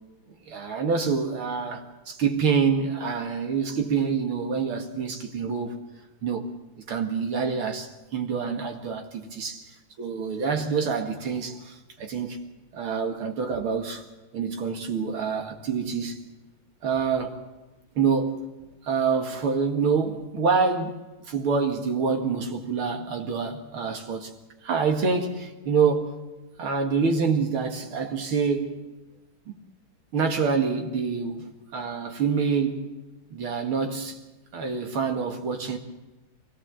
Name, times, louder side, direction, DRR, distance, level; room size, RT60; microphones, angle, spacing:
voice 1, 0.5-5.8 6.2-6.5 6.9-9.6 10.0-12.4 12.7-14.0 14.3-16.2 16.8-17.4 18.0-18.4 18.8-24.3 24.6-26.2 26.6-29.0 29.5-29.6 30.1-32.9 33.3-34.2 34.5-35.8, right 5 dB, 85° right, 2.8 m, -26 dB
22.5 x 17.5 x 7.6 m
omnidirectional pair, 2.3 m